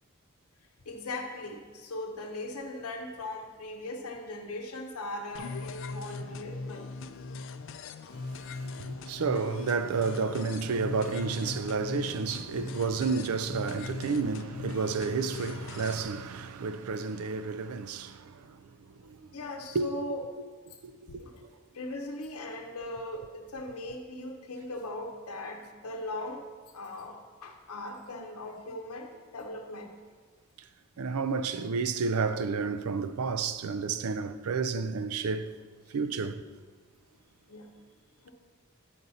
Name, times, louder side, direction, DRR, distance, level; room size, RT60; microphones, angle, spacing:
voice 1, 0.8-6.9 8.5-8.6 19.3-20.2 21.1-21.4 21.7-26.5 26.7-29.9 37.5-37.7 38.2-38.3, left 2 dB, 90° left, 0.8 m, -39 dB
sound 1, 5.3-16.0, left 3 dB, 60° left, 0.4 m, -40 dB
voice 2, 8.1-19.2 19.7-19.9 21.1-21.5 31.0-35.5 35.9-36.4, right 4 dB, 85° right, 0.4 m, -31 dB
11.0 x 5.2 x 4.1 m
head